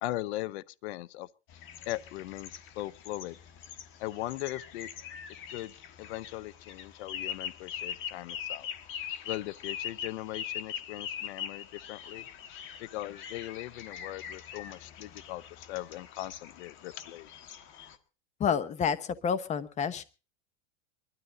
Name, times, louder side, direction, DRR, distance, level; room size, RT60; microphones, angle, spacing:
voice 1, 0.0-1.3 1.9-3.4 4.0-4.9 5.5-5.7 6.0-8.7 9.2-12.3 12.8-17.3, left 16 dB, 75° left, 0.8 m, -39 dB
sound 1, 1.5-18.0, left 8 dB, 35° left, 1.5 m, -42 dB
voice 2, 18.4-20.0, left 7 dB, 20° left, 1.0 m, -29 dB
22.0 x 13.0 x 3.9 m
supercardioid pair, 150°, 33 cm